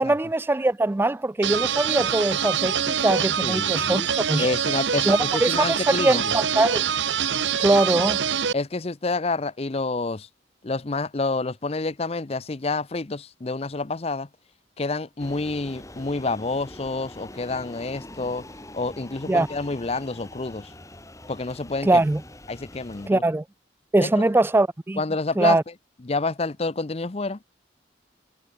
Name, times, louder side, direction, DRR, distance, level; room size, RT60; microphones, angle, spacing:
voice 1, 0.0-4.0 4.3-4.5 5.1-6.8 7.6-8.2 19.3-19.5 21.9-22.2 23.1-23.4 23.9-25.0 25.4-25.6, right 2 dB, 10° right, 0.3 m, -22 dB
sound 1, 1.4-8.5, right 8 dB, 80° right, 1.1 m, -25 dB
voice 2, 3.4-4.1 4.4-6.3 8.5-10.3 10.6-14.3 14.8-18.5 18.7-20.7 21.3-22.0 22.5-23.2 24.0-24.2 25.0-25.7 26.0-27.4, left 3 dB, 35° left, 0.7 m, -28 dB
sound 2, 15.2-23.1, left 1 dB, 15° left, 2.9 m, -43 dB
head